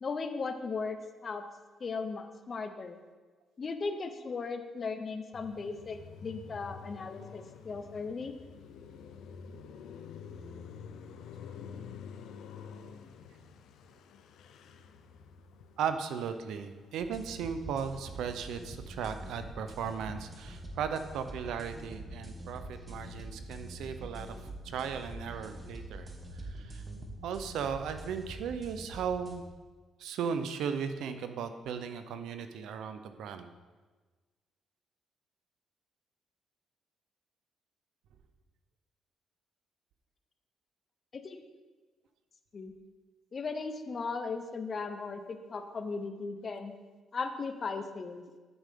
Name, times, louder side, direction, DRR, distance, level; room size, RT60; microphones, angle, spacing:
voice 1, 0.0-1.4 1.8-3.0 3.6-8.3 41.1-41.4 42.5-42.7 43.3-46.7 47.1-48.2, left 4 dB, 40° left, 8 dB, 0.9 m, -37 dB
Car passing by, 5.3-17.8 18.1-20.6, left 6 dB, 80° left, 0.6 m, -49 dB
voice 2, 15.8-24.4 24.6-26.1 26.5-26.8 27.2-29.4 30.0-33.5, right 7 dB, 85° right, 9 dB, 0.7 m, -36 dB
sound 1, 17.0-29.4, right 1 dB, 20° right, 1.6 m, -45 dB
12.0 x 7.0 x 3.7 m, 1.3 s
cardioid pair, 90°, 0 cm